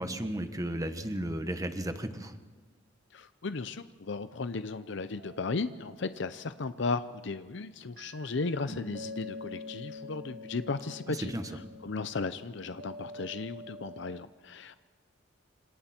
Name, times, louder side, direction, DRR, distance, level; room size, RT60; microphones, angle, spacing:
voice 1, 0.0-2.3 11.1-11.4, right 1 dB, 20° right, 8 dB, 1.4 m, -34 dB
voice 2, 3.1-14.8, left 3 dB, 65° left, 12 dB, 0.7 m, -35 dB
sound 1, 4.7-7.5 8.0-14.2, left 2 dB, 55° right, 1.4 m, -47 dB
28.0 x 26.0 x 4.5 m, 1.4 s
head